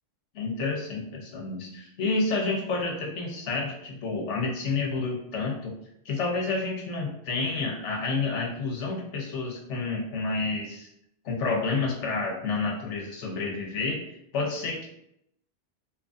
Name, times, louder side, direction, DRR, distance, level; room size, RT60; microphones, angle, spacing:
voice 1, 0.4-5.7 6.0-10.9 11.2-14.0 14.3-14.9, left 3 dB, 90° left, 0 dB, 1.0 m, -29 dB
2.8 x 2.4 x 2.4 m, 0.77 s
omnidirectional pair, 1.2 m